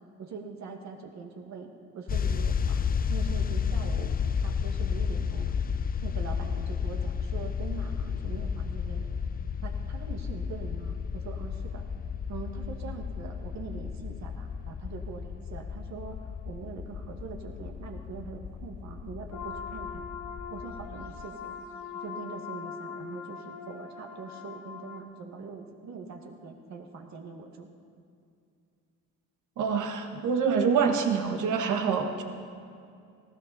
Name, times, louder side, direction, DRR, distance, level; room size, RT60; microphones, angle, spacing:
voice 1, 0.2-4.2 4.4-5.6 6.0-9.2 9.6-11.8 12.3-20.0 20.5-21.5 21.9-27.7, right 5 dB, 65° right, 3 dB, 2.0 m, -43 dB
sound 1, 2.1-21.3, left 6 dB, 30° left, 0.5 m, -32 dB
sound 2, 19.3-25.0, left 7 dB, 70° left, 1.9 m, -41 dB
voice 2, 29.6-32.2, right 6 dB, 80° right, 5 dB, 1.6 m, -26 dB
19.0 x 16.0 x 4.2 m, 2.4 s
cardioid pair, 90°, 30 cm